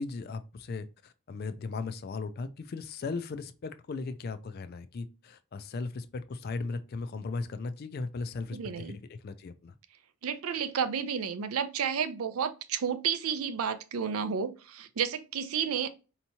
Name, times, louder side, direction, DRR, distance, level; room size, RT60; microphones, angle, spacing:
voice 1, 0.0-9.7, left 3 dB, 45° left, 0.3 m, -37 dB
voice 2, 8.5-9.0 10.2-15.9, right 7 dB, 75° right, 0.5 m, -31 dB
4.5 x 2.8 x 2.7 m
head